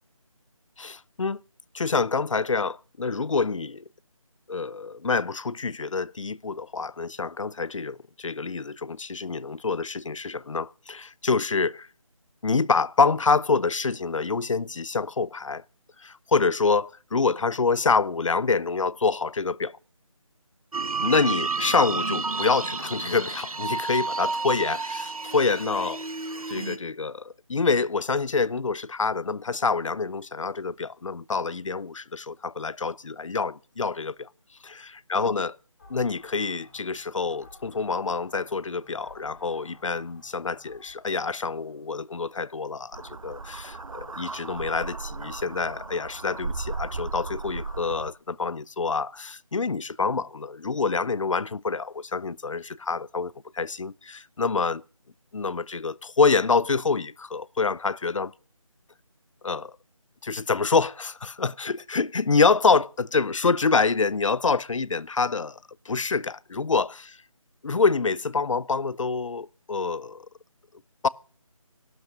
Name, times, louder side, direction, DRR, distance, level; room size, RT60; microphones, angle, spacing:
voice 1, 0.8-1.4 1.7-3.8 4.5-11.9 12.4-15.6 16.0-19.7 21.0-26.0 26.5-34.3 35.1-35.6 35.9-54.8 55.3-58.3 59.4-59.7 60.2-65.6 65.9-67.1 67.6-70.3 71.0-71.1, left 4 dB, 65° left, 0.6 m, -26 dB
sound 1, 20.7-26.8, right 4 dB, 90° right, 1.2 m, -30 dB
sound 2, 35.8-42.5, left 2 dB, 35° left, 5.2 m, -55 dB
sound 3, 42.9-48.1, right 4 dB, 70° right, 0.9 m, -36 dB
13.0 x 12.0 x 6.5 m
figure-of-eight pair, 175°, 18 cm